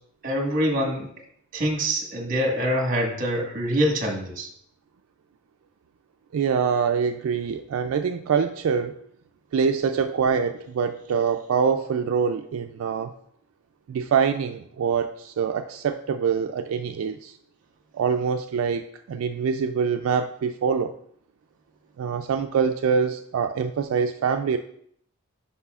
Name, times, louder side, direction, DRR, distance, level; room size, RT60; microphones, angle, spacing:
voice 1, 0.2-1.1 1.5-4.5, equal, 40° right, 1 dB, 1.4 m, -25 dB
voice 2, 6.3-9.0 9.5-13.1 13.9-17.4 17.9-20.9 22.0-24.6, right 6 dB, 80° right, 7 dB, 0.3 m, -25 dB
9.6 x 5.5 x 2.4 m, 0.66 s
head